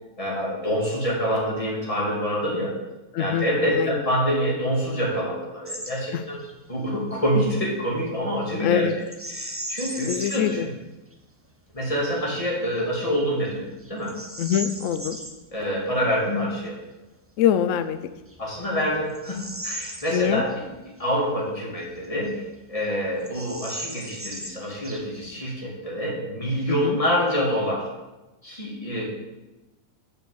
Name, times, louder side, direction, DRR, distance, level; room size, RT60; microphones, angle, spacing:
voice 1, 0.2-2.7 3.2-6.4 6.7-8.9 9.3-10.7 11.7-14.1 15.5-16.7 18.4-22.4 22.7-27.9 28.4-29.0, equal, 20° left, -4 dB, 2.7 m, -26 dB
voice 2, 3.1-3.5 3.7-3.9 6.1-6.2 8.6-8.9 10.1-10.7 14.4-15.2 17.4-18.0 20.1-20.4 26.7-27.0, left 9 dB, 80° left, 11 dB, 0.7 m, -24 dB
Bird vocalization bird call bird song, 5.7-6.0 6.3-6.5 9.1-10.6 11.1-11.2 11.8-12.2 12.8-12.9 13.5-15.4 17.5-17.6 18.2-20.6 21.0-21.1 21.8-22.6 22.8-22.9 23.2-25.3, right 1 dB, 15° right, 0.5 m, -37 dB
6.8 x 6.4 x 7.7 m, 1.1 s
omnidirectional pair, 1.9 m